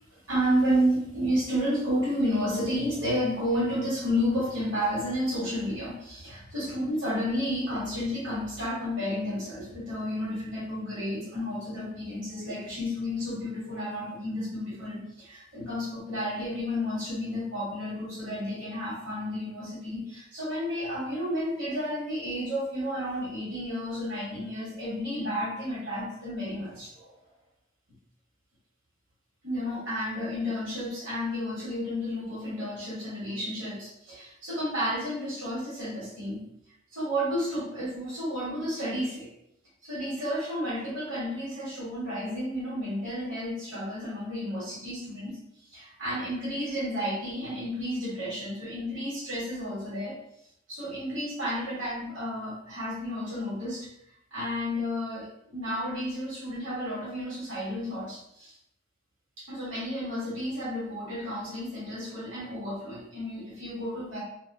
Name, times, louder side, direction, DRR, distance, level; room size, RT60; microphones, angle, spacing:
voice 1, 0.1-27.1 29.4-36.4 36.9-39.3 39.8-45.4 45.7-50.2 50.7-53.9 54.3-58.5 59.4-64.2, equal, 80° right, -7 dB, 1.0 m, -31 dB
2.5 x 2.2 x 2.2 m, 0.76 s
head